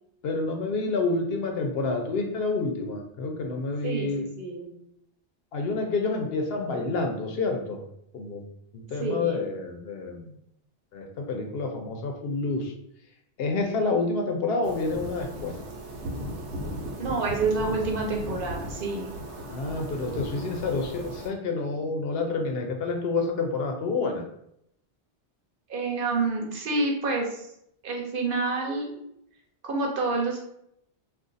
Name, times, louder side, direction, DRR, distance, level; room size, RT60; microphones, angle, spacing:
voice 1, 0.2-4.3 5.5-7.8 8.1-8.4 8.7-10.3 10.9-12.7 13.4-15.6 19.5-24.2, left 3 dB, 70° left, 3 dB, 0.8 m, -28 dB
voice 2, 3.8-4.7 9.0-9.4 17.0-19.1 25.7-27.5 27.8-29.0 29.6-30.4, right 3 dB, 55° right, 0 dB, 0.9 m, -28 dB
sound 1, 14.6-21.3, equal, 85° right, 1.0 m, -36 dB
2.5 x 2.4 x 3.8 m, 0.75 s
omnidirectional pair, 1.1 m